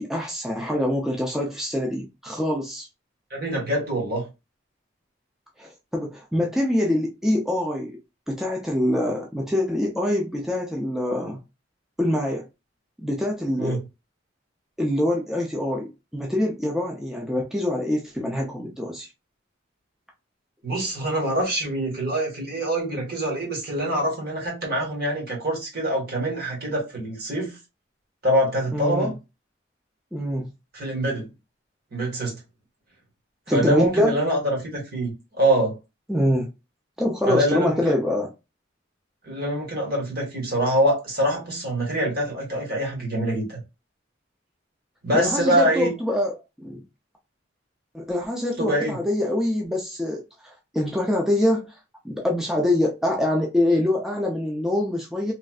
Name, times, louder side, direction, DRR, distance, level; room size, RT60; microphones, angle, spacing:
voice 1, 0.0-2.9 5.6-8.0 8.3-11.4 12.0-12.5 13.0-13.8 14.8-19.1 28.7-29.1 30.1-30.5 33.5-34.2 36.1-36.5 37.0-38.3 45.1-46.8 47.9-51.8 52.0-55.3, left 1 dB, ahead, 0.4 m, -25 dB
voice 2, 3.3-4.2 13.6-13.8 20.6-27.6 28.2-29.1 30.7-31.3 31.9-32.3 33.5-35.8 37.3-37.8 39.2-43.6 45.0-45.9 48.6-48.9, right 1 dB, 55° right, 1.6 m, -24 dB
3.2 x 2.5 x 2.3 m
head